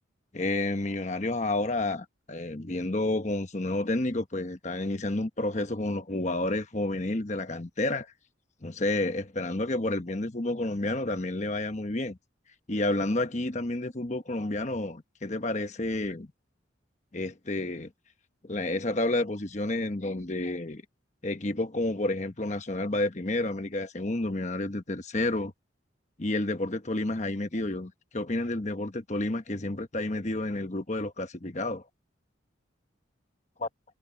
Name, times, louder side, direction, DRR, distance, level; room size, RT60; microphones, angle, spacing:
voice 1, 0.3-8.1 8.6-12.2 12.7-16.3 17.1-17.9 18.4-20.8 21.2-25.5 26.2-31.8 33.6-33.7, left 2 dB, 35° left, 1.1 m, -30 dB
head